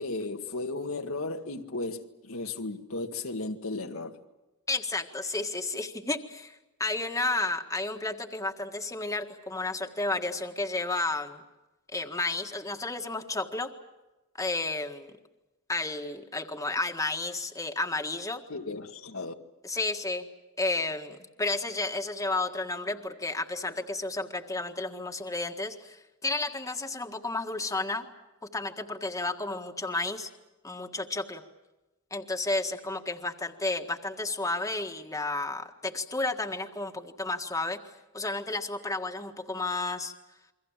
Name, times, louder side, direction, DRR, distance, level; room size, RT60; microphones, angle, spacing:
voice 1, 0.0-4.2 18.5-19.3, left 2 dB, 90° left, 2.0 m, -35 dB
voice 2, 4.7-11.4 11.9-13.7 14.4-15.1 15.7-18.4 19.6-20.3 20.6-28.1 28.4-30.3 30.6-31.4 32.1-37.8 38.1-40.1, left 2 dB, 15° left, 1.7 m, -32 dB
28.5 x 23.5 x 7.4 m
head